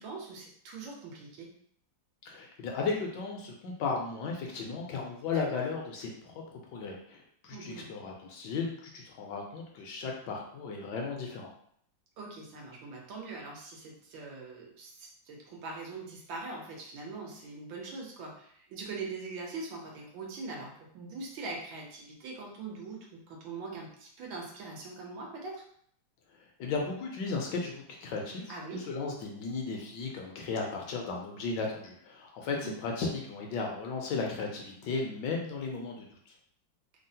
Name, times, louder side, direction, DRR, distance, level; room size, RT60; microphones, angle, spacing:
voice 1, 0.0-1.5 5.3-5.6 7.5-7.9 12.2-23.0 23.3-25.6 28.5-28.9 32.6-32.8, right 3 dB, 85° right, -1 dB, 1.5 m, -42 dB
voice 2, 2.2-6.4 6.7-11.5 26.6-36.3, left 4 dB, 75° left, 0 dB, 1.2 m, -35 dB
3.6 x 2.0 x 2.7 m, 0.65 s
omnidirectional pair, 2.1 m